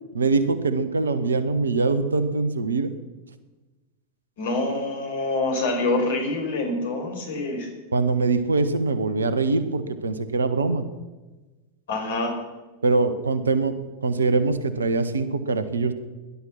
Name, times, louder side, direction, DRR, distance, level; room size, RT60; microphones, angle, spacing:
voice 1, 0.1-2.9 7.9-10.8 12.8-13.8 14.0-15.9, right 3 dB, 70° right, 13 dB, 1.3 m, -23 dB
voice 2, 4.4-7.7 11.9-12.4, left 2 dB, 60° left, 4 dB, 4.6 m, -26 dB
19.0 x 11.5 x 6.0 m, 1.2 s
figure-of-eight pair, 90°, 0 cm